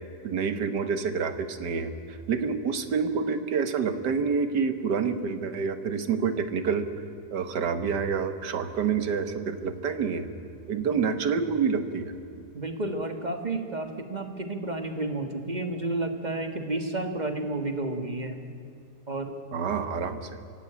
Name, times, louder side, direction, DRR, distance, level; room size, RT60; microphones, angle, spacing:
voice 1, 0.2-6.9 7.3-10.3 10.7-12.1 19.5-20.3, right 6 dB, 80° right, 10 dB, 1.9 m, -28 dB
voice 2, 12.5-18.4 19.1-19.3, right 2 dB, 25° right, 6 dB, 1.7 m, -31 dB
24.5 x 17.0 x 8.9 m, 2.6 s
omnidirectional pair, 1.8 m